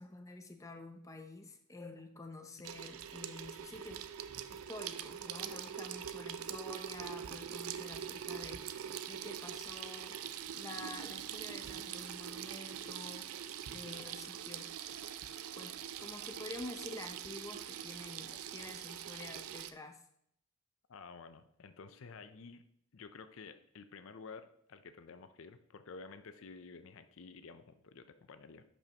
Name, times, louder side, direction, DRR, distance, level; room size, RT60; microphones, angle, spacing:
voice 1, 0.0-4.1 4.5-10.2 10.5-13.4 13.7-14.7 15.5-20.0, left 2 dB, 15° left, 5 dB, 0.6 m, -49 dB
Water tap faucet / Sink (filling or washing), 2.6-19.7, right 9 dB, 80° right, 0.4 m, -43 dB
voice 2, 13.7-14.1 20.9-22.6 22.9-28.6, left 4 dB, 65° left, 11 dB, 0.5 m, -52 dB
10.5 x 5.4 x 2.9 m, 0.71 s
head